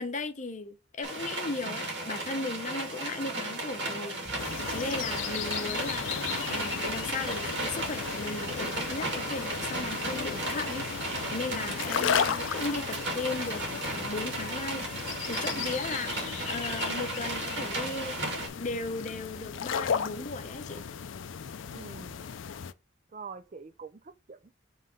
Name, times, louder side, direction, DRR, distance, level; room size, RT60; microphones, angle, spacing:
voice 1, 0.0-6.1 6.5-14.9 15.3-18.1 18.5-20.8, left 3 dB, 40° left, 0.7 m, -36 dB
sound 1, 1.0-18.5, right 2 dB, 60° right, 2.2 m, -35 dB
sound 2, 4.2-14.3, equal, 10° left, 1.8 m, -56 dB
sound 3, 4.4-22.7, left 7 dB, 85° left, 0.4 m, -35 dB
voice 2, 15.4-15.7 21.7-22.2 23.1-24.5, right 4 dB, 40° right, 0.4 m, -46 dB
5.6 x 3.2 x 5.3 m
head